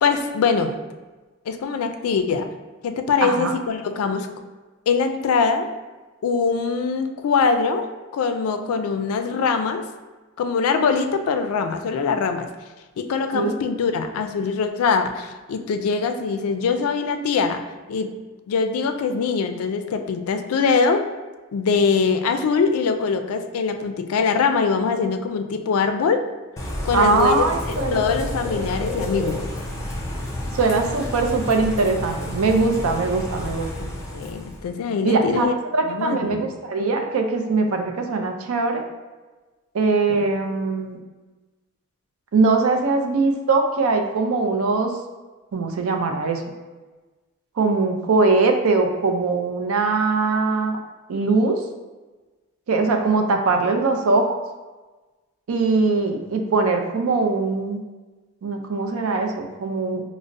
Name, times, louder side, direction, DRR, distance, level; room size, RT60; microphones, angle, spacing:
voice 1, 0.0-0.8 1.5-2.5 2.8-4.3 4.9-5.7 6.2-9.9 10.4-12.5 13.0-17.6 17.9-18.1 18.5-21.1 21.5-26.2 26.8-29.4 33.8-35.5 35.8-36.4, left 5 dB, 90° left, 7 dB, 0.3 m, -23 dB
voice 2, 3.2-3.5 13.3-13.6 26.9-28.0 30.5-33.7 35.0-38.8 39.7-41.0 42.3-44.9 45.5-46.4 47.6-50.8 51.1-51.6 52.7-54.3 55.5-57.8 58.4-60.0, right 3 dB, 85° right, 4 dB, 0.4 m, -21 dB
Bird / Rain, 26.6-34.7, left 1 dB, 15° left, 0.4 m, -30 dB
5.1 x 2.0 x 2.5 m, 1.2 s
head